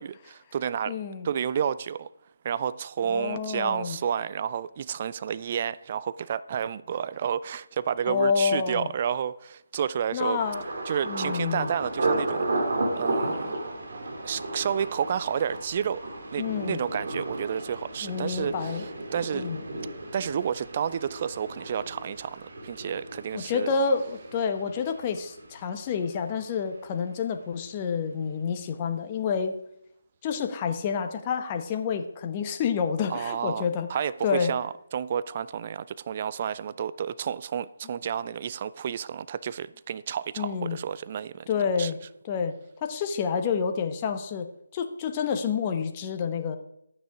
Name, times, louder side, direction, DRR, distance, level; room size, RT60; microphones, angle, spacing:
voice 1, 0.0-0.9 1.2-2.1 2.4-10.4 10.9-12.5 13.0-13.5 14.3-16.0 16.3-19.5 20.1-23.7 33.1-41.5 41.8-41.9, right 8 dB, 35° right, 0.4 m, -30 dB
voice 2, 0.9-1.3 3.1-4.0 8.1-8.9 10.1-10.6 11.0-11.7 16.4-16.8 18.0-18.9 19.3-19.6 23.3-29.5 30.2-33.9 34.2-34.5 40.4-40.8 41.5-42.0 42.2-42.6 42.8-46.6, left 6 dB, 25° left, 1.1 m, -28 dB
Thunder, 10.4-26.2 26.4-27.0 27.5-27.7, right 2 dB, 55° right, 2.6 m, -34 dB
12.5 x 9.3 x 4.8 m
figure-of-eight pair, 150°, 0 cm